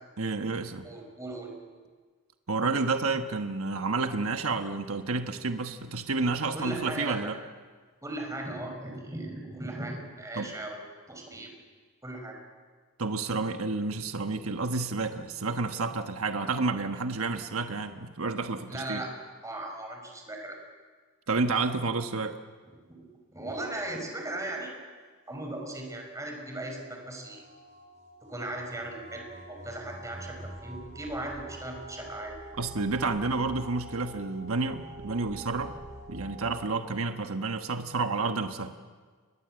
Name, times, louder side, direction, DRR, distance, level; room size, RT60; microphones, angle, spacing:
voice 1, 0.2-0.9 2.5-7.4 10.3-10.5 13.0-19.0 21.3-22.4 32.6-35.8 36.1-38.7, right 3 dB, 75° right, 6 dB, 1.3 m, -30 dB
voice 2, 0.8-1.5 6.5-7.3 8.0-10.8 11.1-11.5 12.0-12.4 18.7-19.1 19.4-20.6 23.0-23.1 23.3-24.7 25.3-27.4 28.3-32.3, right 1 dB, 15° right, 2 dB, 5.6 m, -37 dB
sound 1, 25.4-36.7, right 1 dB, 35° right, 5.2 m, -46 dB
29.0 x 22.5 x 7.8 m, 1.5 s
head